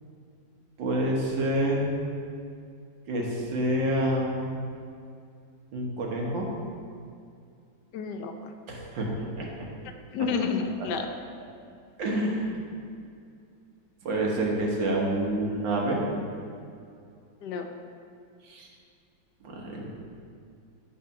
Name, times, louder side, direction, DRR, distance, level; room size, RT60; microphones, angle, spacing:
voice 1, 0.8-1.9 3.1-4.5 5.7-6.5 8.7-9.5 12.0-12.4 14.1-16.0 18.5-18.7 19.4-19.9, right 1 dB, 85° right, -1 dB, 2.0 m, -27 dB
voice 2, 7.9-8.3 10.1-11.1 17.4-17.7, left 5 dB, 70° left, 5 dB, 1.2 m, -29 dB
10.0 x 4.2 x 5.8 m, 2.4 s
omnidirectional pair, 2.0 m